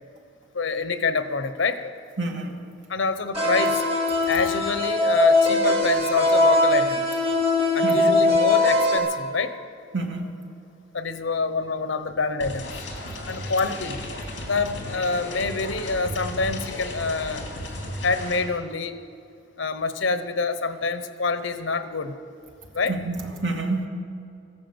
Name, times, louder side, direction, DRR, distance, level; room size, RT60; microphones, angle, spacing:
voice 1, 0.5-1.8 2.9-3.8 4.3-7.0 7.7-9.5 10.9-12.7 13.3-14.0 14.5-17.4 18.0-19.0 19.6-22.1 22.7-22.9, left 4 dB, 85° left, 10 dB, 0.9 m, -26 dB
voice 2, 2.2-2.5 7.8-8.2 9.9-10.3 22.9-23.9, right 2 dB, 70° right, 1 dB, 2.2 m, -28 dB
sound 1, 3.3-9.0, left 2 dB, 30° right, 2.7 m, -20 dB
sound 2, 12.4-18.4, left 1 dB, 65° left, 3.2 m, -34 dB
15.0 x 12.0 x 7.9 m, 2.5 s
head